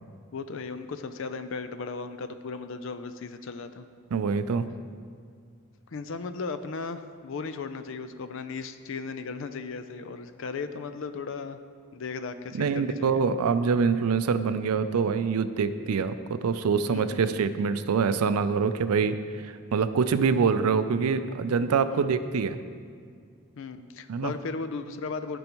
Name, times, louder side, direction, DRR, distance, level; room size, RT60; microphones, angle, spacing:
voice 1, 0.3-3.9 5.9-11.6 11.9-13.2 16.9-17.4 20.3-20.5 21.9-22.1 23.6-25.4, left 4 dB, 60° left, 10 dB, 0.4 m, -36 dB
voice 2, 4.1-4.6 12.5-19.2 19.7-22.6 24.1-24.3, right 5 dB, 90° right, 12 dB, 0.4 m, -25 dB
14.0 x 5.3 x 3.0 m, 2.1 s
head